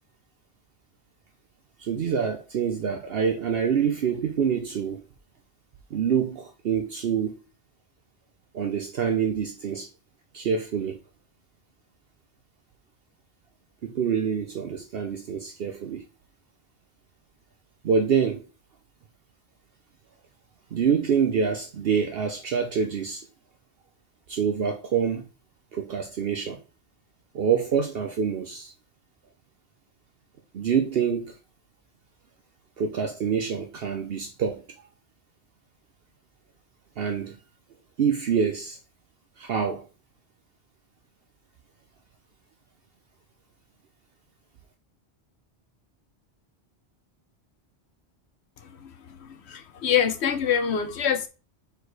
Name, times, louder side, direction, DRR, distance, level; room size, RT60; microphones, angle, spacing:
voice 1, 1.8-5.0 5.9-7.4 8.5-9.9 10.3-11.0 13.8-16.1 17.8-18.5 20.7-23.3 24.3-25.2 25.7-26.6 27.3-28.7 30.5-31.4 32.8-34.6 37.0-37.4 38.0-38.8 39.4-39.9, right 7 dB, 65° right, 0.9 m, -26 dB
voice 2, 49.5-51.3, left 8 dB, 75° left, 1.1 m, -24 dB
4.5 x 4.5 x 4.7 m
omnidirectional pair, 1.1 m